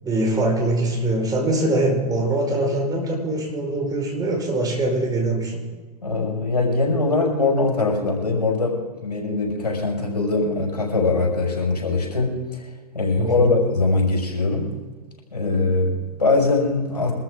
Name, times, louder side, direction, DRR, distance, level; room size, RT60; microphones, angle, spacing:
voice 1, 0.0-5.6 13.2-13.6, right 2 dB, 20° right, 0 dB, 5.0 m, -23 dB
voice 2, 6.0-12.6 12.9-14.7 15.3-17.1, left 3 dB, 85° left, -2 dB, 5.9 m, -22 dB
23.5 x 14.0 x 3.8 m, 1.4 s
hypercardioid pair, 105°, 20 cm